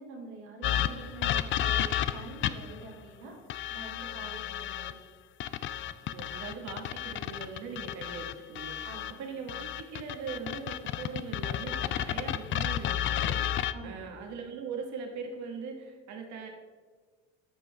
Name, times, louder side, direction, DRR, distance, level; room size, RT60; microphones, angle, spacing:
voice 1, 0.0-5.0 8.8-9.3 13.7-14.0, right 2 dB, 75° right, -2 dB, 2.4 m, -46 dB
sound 1, 0.6-2.8 3.5-4.9 5.4-9.1 9.5-13.7, left 11 dB, 35° left, 0.4 m, -32 dB
voice 2, 6.1-8.9 9.2-16.5, right 5 dB, 55° right, 2 dB, 1.6 m, -41 dB
13.0 x 5.3 x 3.4 m, 1.5 s
hypercardioid pair, 65°, 35 cm